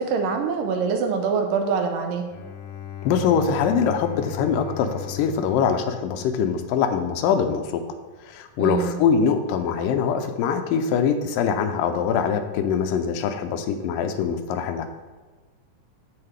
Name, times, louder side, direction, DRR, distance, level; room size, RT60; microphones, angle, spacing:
voice 1, 0.0-2.2 8.6-9.0, right 5 dB, 85° right, 4 dB, 2.5 m, -24 dB
Bowed string instrument, 2.3-7.0, left 11 dB, 70° left, 1.9 m, -37 dB
voice 2, 3.0-7.8 8.3-14.9, left 6 dB, 90° left, 7 dB, 2.3 m, -23 dB
14.0 x 4.8 x 3.4 m, 1.3 s
omnidirectional pair, 3.9 m